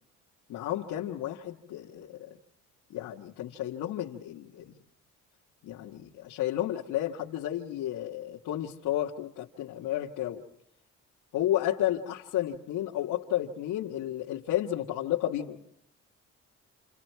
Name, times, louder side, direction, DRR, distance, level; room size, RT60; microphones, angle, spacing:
voice 1, 0.5-2.3 2.9-4.8 5.6-10.4 11.3-15.6, left 12 dB, 85° left, -3 dB, 1.7 m, -32 dB
29.0 x 29.0 x 4.7 m, 0.71 s
cardioid pair, 90°, 30 cm